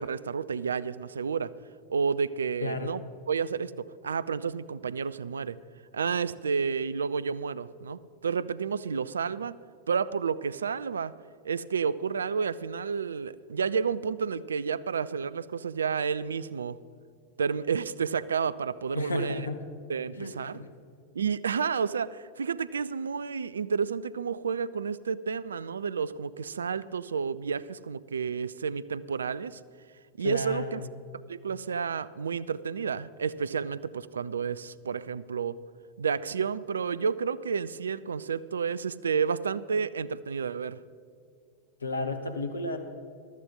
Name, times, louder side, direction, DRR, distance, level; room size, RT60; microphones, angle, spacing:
voice 1, 0.0-1.5 1.9-3.0 3.3-5.6 5.9-9.5 9.9-11.2 11.4-16.8 17.4-19.4 19.9-20.6 21.1-29.6 30.2-30.8 31.3-35.6 36.0-40.8, right 6 dB, 70° right, 18 dB, 0.3 m, -30 dB
voice 2, 2.6-2.9 18.9-19.6 20.1-20.7 30.2-30.9 41.8-42.8, left 2 dB, 75° left, 8 dB, 1.1 m, -33 dB
14.5 x 12.5 x 3.8 m, 2.3 s
figure-of-eight pair, 90°, 0 cm